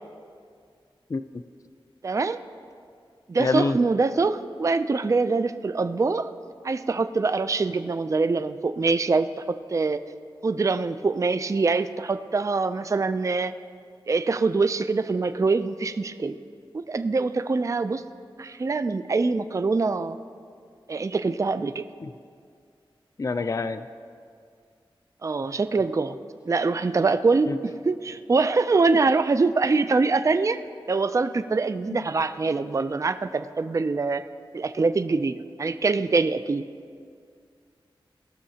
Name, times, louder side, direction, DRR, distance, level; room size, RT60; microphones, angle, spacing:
voice 1, 2.0-2.4 3.3-6.3 6.6-10.0 10.4-13.5 14.1-16.4 16.7-18.0 18.4-20.2 20.9-21.8 25.2-26.2 26.5-30.6 30.9-34.2 34.5-36.6, right 4 dB, 35° right, 11 dB, 0.4 m, -24 dB
voice 2, 3.4-3.8 22.0-22.1 23.2-23.8 27.5-27.6 31.9-32.0, left 3 dB, 35° left, 10 dB, 0.3 m, -26 dB
18.5 x 6.5 x 2.8 m, 2.2 s
cardioid pair, 50°, 9 cm